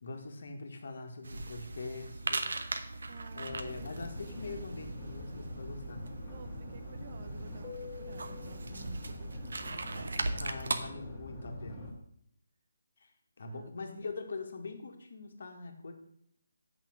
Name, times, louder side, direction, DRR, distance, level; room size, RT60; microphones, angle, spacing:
voice 1, 0.0-2.5 3.3-6.0 8.7-8.9 10.3-11.9 13.0-13.1 13.4-15.9, left 3 dB, 55° left, 4 dB, 1.7 m, -43 dB
sound 1, 1.2-10.8, right 3 dB, 70° right, 1.0 m, -39 dB
voice 2, 3.1-4.5 6.3-9.9 13.5-14.1, right 5 dB, 35° right, 9 dB, 0.6 m, -54 dB
sound 2, 3.5-11.9, left 2 dB, 10° left, 1.9 m, -44 dB
7.8 x 6.3 x 6.4 m, 0.70 s
hypercardioid pair, 170°, 0 cm